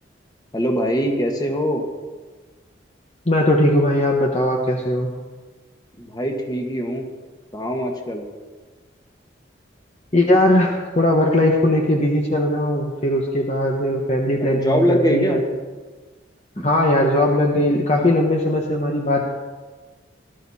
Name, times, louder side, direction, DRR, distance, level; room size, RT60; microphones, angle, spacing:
voice 1, 0.5-1.8 6.0-7.0 7.5-8.2 14.4-15.4, equal, 20° left, 2 dB, 1.7 m, -22 dB
voice 2, 3.3-5.1 10.1-15.4 16.6-19.2, left 1 dB, 35° left, 0 dB, 1.2 m, -19 dB
19.0 x 12.5 x 4.3 m, 1.3 s
head